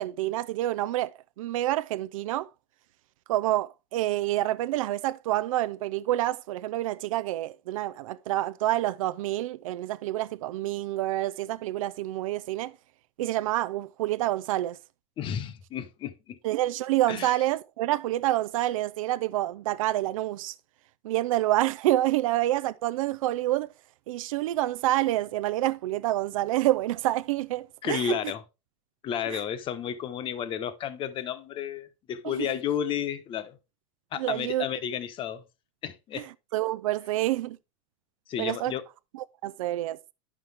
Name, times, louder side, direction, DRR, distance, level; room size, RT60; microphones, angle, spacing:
voice 1, 0.0-2.5 3.3-12.7 13.2-14.8 16.4-20.6 21.0-23.7 24.1-28.2 29.3-29.4 32.2-32.5 34.2-34.7 36.2-36.3 36.5-37.6 38.4-38.7 39.1-40.0, right 15 dB, 85° right, 0.5 m, -28 dB
voice 2, 15.2-16.4 17.1-17.4 27.8-28.4 29.0-33.6 34.1-35.4 35.8-36.3 38.3-38.8, left 9 dB, 30° left, 1.0 m, -32 dB
10.5 x 6.1 x 3.4 m
supercardioid pair, 150°, 17 cm